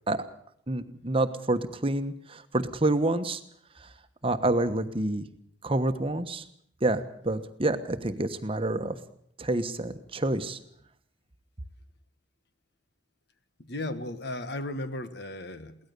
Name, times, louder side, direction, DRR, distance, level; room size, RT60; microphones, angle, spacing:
voice 1, 0.7-3.4 4.2-5.3 5.6-6.4 6.8-9.0 9.4-10.6, right 2 dB, 30° right, 9 dB, 1.2 m, -28 dB
voice 2, 13.7-15.8, left 1 dB, 55° left, 11 dB, 1.5 m, -35 dB
22.5 x 17.5 x 6.8 m, 0.66 s
head